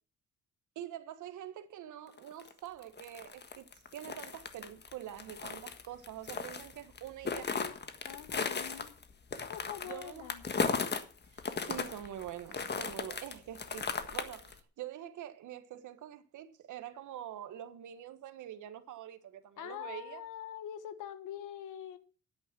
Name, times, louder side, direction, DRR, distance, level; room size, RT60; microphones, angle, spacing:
voice 1, 0.7-7.5 9.8-10.3 11.3-20.2, right 11 dB, 80° right, 1.5 m, -45 dB
sound 1, 2.2-11.0 11.4-14.6, left 5 dB, 35° left, 1.6 m, -36 dB
voice 2, 8.0-8.9 9.5-10.4 19.6-22.0, left 10 dB, 85° left, 1.5 m, -44 dB
10.5 x 9.2 x 6.0 m
cardioid pair, 90°, 30 cm